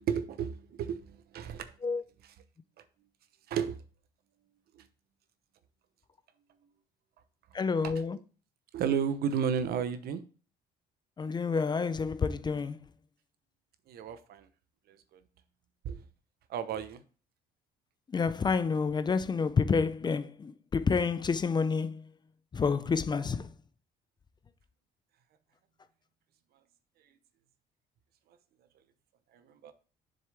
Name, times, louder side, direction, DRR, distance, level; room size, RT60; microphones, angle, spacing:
voice 1, 0.0-1.8 2.2-2.3 3.5-3.8 4.7-4.9 7.8-7.9 8.7-10.2 13.9-14.5 14.9-15.2 15.8-16.0 16.5-17.0 29.3-29.7, right 7 dB, 65° right, 0.9 m, -33 dB
voice 2, 7.5-8.2 11.2-12.8 18.1-22.0 22.5-23.5, left 5 dB, 25° left, 0.5 m, -29 dB
7.5 x 6.6 x 3.4 m
cardioid pair, 110°, 17 cm